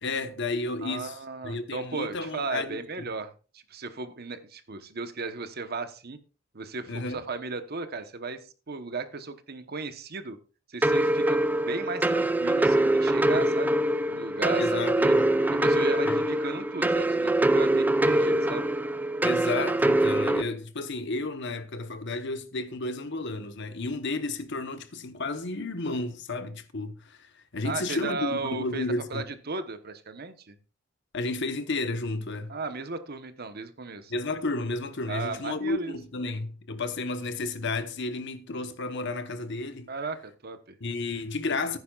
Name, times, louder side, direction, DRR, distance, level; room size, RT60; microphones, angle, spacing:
voice 1, 0.0-1.2 1.4-3.1 6.9-7.2 14.6-15.3 16.0-16.2 19.2-29.2 31.1-32.5 34.1-39.9 40.8-41.8, left 3 dB, 60° left, 1.1 m, -32 dB
voice 2, 0.8-6.2 6.5-10.4 10.7-13.8 14.1-15.1 15.5-18.7 27.6-30.5 32.5-34.1 35.1-36.0 39.9-40.8, right 3 dB, 50° right, 1.1 m, -36 dB
sound 1, 10.8-20.4, right 1 dB, 10° right, 0.4 m, -24 dB
15.0 x 9.5 x 2.4 m
head